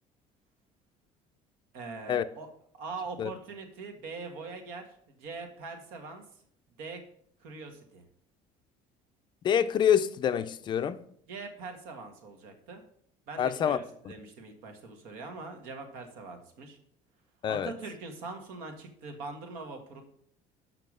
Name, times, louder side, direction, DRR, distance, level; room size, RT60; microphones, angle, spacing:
voice 1, 1.7-2.5 2.8-4.8 5.2-6.2 6.8-7.0 7.4-8.0 11.3-12.8 13.3-16.8 17.5-20.0, right 4 dB, 85° right, 1.8 m, -42 dB
voice 2, 9.4-11.0 13.4-13.8 17.4-17.7, left 9 dB, 30° left, 0.4 m, -26 dB
6.8 x 5.9 x 6.2 m
cardioid pair, 165°, 15 cm